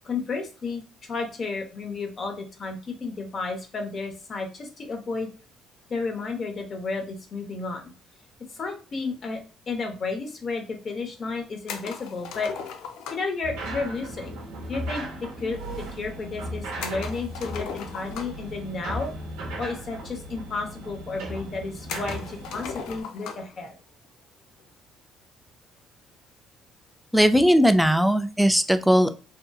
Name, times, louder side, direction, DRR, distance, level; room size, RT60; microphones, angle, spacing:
voice 1, 0.0-5.3 5.9-7.9 8.5-9.4 9.7-12.5 13.1-14.4 14.7-15.6 15.9-19.1 19.6-23.7, left 4 dB, 45° left, 3 dB, 0.9 m, -32 dB
sound 1, 11.7-13.4 16.8-18.5 19.6-19.7 20.0-20.1 20.8-20.9 21.9-23.5, left 6 dB, 80° left, 0.4 m, -37 dB
sound 2, 13.4-23.0, right 1 dB, 85° right, 0.8 m, -36 dB
voice 2, 27.1-29.1, equal, ahead, 9 dB, 0.4 m, -18 dB
2.8 x 2.4 x 2.3 m, 0.35 s
supercardioid pair, 75°, 0 cm